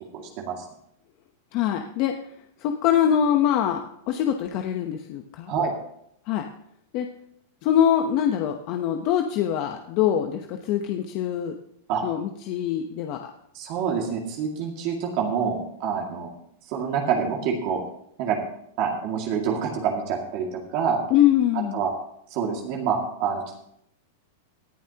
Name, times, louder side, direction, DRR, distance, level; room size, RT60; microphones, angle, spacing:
voice 1, 0.1-0.6 5.5-5.7 11.9-12.0 13.5-16.3 16.7-17.8 18.2-18.4 18.8-21.0 21.7-21.9 22.3-23.6, right 6 dB, 45° right, 0 dB, 2.1 m, -26 dB
voice 2, 1.5-2.1 2.6-5.5 6.3-6.4 6.9-7.1 7.6-11.5 12.0-13.3 21.1-21.8, left 10 dB, 45° left, 5 dB, 0.9 m, -23 dB
18.0 x 11.0 x 2.9 m, 0.74 s
supercardioid pair, 150°, 0 cm